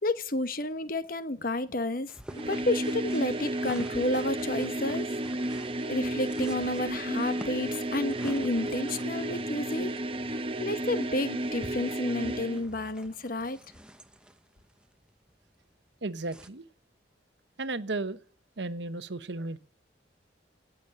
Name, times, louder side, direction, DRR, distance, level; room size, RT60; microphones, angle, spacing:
voice 1, 0.0-2.1 2.4-5.1 5.9-9.9 10.3-13.6, left 1 dB, 50° left, 1.1 m, -30 dB
sound 1, 2.1-16.5, equal, 5° right, 0.9 m, -51 dB
sound 2, 2.3-12.6, right 1 dB, 30° right, 1.1 m, -32 dB
voice 2, 16.0-16.6 17.6-18.2 18.6-19.6, right 2 dB, 75° right, 1.1 m, -34 dB
18.0 x 7.3 x 8.7 m
head